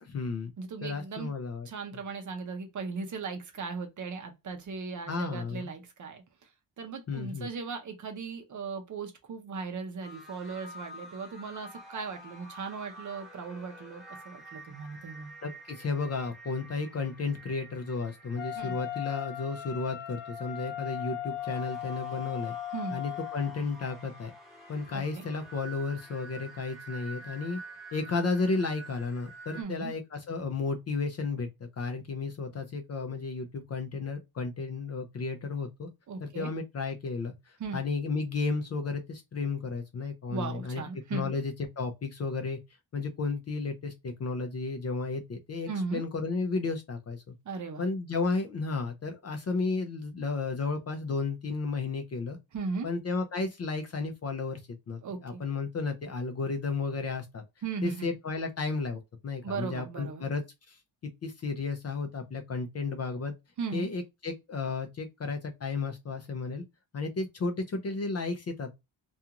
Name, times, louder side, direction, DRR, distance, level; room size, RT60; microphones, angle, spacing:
voice 1, 0.0-0.5 0.8-1.7 1.9-2.0 5.1-5.7 7.1-7.5 15.4-22.6 22.9-24.3 24.7-27.6 27.9-35.9 36.2-40.8 41.1-42.6 42.9-47.3 47.8-52.4 52.8-57.4 57.8-60.8 61.2-63.3 63.7-66.6 66.9-68.7, left 4 dB, 35° left, 0.4 m, -33 dB
voice 2, 0.6-1.3 1.7-6.2 6.8-15.3 18.6-18.8 22.7-23.0 24.9-25.3 29.6-29.9 36.1-36.5 37.6-37.8 40.3-41.3 45.7-46.0 47.5-47.9 52.5-52.9 55.0-55.4 57.6-58.1 59.4-60.3 63.6-63.9, right 4 dB, 40° right, 0.6 m, -37 dB
sound 1, 10.0-29.6, right 2 dB, ahead, 1.0 m, -49 dB
Wind instrument woodwind instrument, 18.4-23.6, left 12 dB, 85° left, 0.7 m, -38 dB
2.4 x 2.4 x 2.8 m
wide cardioid pair, 180°, 46 cm